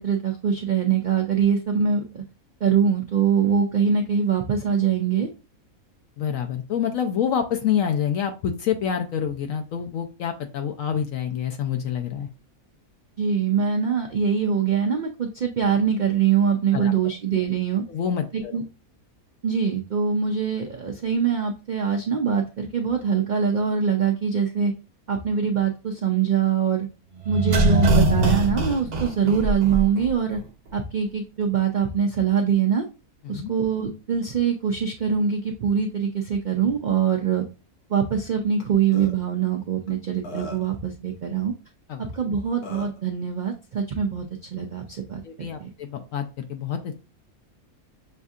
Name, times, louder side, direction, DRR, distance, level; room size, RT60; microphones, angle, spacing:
voice 1, 0.0-2.2 2.6-5.3 13.2-17.8 18.3-18.6 19.4-24.7 25.1-26.9 27.3-30.4 30.7-32.8 33.3-37.4 37.9-41.5 42.0-44.3 44.5-45.2 45.6-45.7, right 7 dB, 75° right, 3 dB, 0.4 m, -23 dB
voice 2, 6.2-12.3 16.7-16.9 17.9-18.6 33.2-33.5 41.9-42.0 45.2-47.0, left 8 dB, 70° left, 5 dB, 0.9 m, -27 dB
sound 1, 27.2-30.1 30.3-30.4, right 2 dB, 60° right, 1.1 m, -21 dB
Burping eructation, 38.6-38.7 38.9-39.1 39.9-40.0 40.2-40.8 42.1-42.2 42.6-43.0, left 1 dB, 90° left, 1.5 m, -37 dB
6.4 x 2.6 x 2.4 m, 0.30 s
omnidirectional pair, 1.5 m